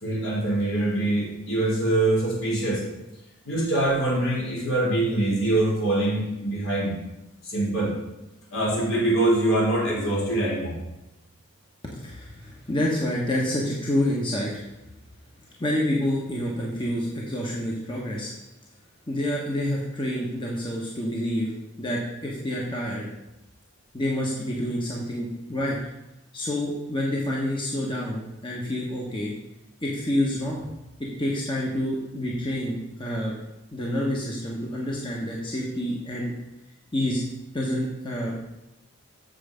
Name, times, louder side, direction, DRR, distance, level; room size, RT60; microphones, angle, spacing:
voice 1, 0.0-2.8 3.4-6.9 7.4-8.0 8.5-10.8, right 1 dB, 70° left, -4 dB, 3.8 m, -24 dB
voice 2, 11.8-14.6 15.6-18.3 19.1-21.5 21.8-23.0 23.9-25.8 26.3-29.3 29.8-30.7 31.2-33.3 33.7-36.3 36.9-37.2 37.5-38.3, left 1 dB, 20° left, -3 dB, 1.4 m, -28 dB
7.8 x 7.1 x 5.2 m, 0.95 s
head